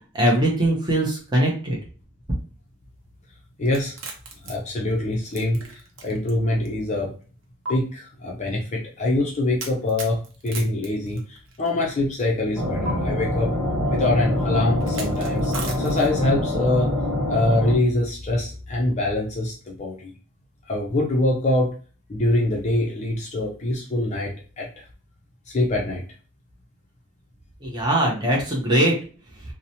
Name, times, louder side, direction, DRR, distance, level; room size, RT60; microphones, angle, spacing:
voice 1, 0.1-1.8 27.6-28.9, right 1 dB, 20° right, -2 dB, 0.6 m, -21 dB
voice 2, 3.6-3.9 4.4-7.1 7.7-13.5 13.9-16.9 17.3-20.1 20.7-21.7 22.1-24.7 25.5-26.0, left 2 dB, 30° left, -1 dB, 0.4 m, -24 dB
sound 1, 3.7-6.3 6.6-6.7 7.6-7.7 9.6-11.7 12.8-12.9 14.8-16.3, right 3 dB, 60° right, 0.6 m, -36 dB
sound 2, 12.5-17.8, left 1 dB, 10° left, 1.0 m, -25 dB
2.8 x 2.1 x 2.7 m, 0.38 s
head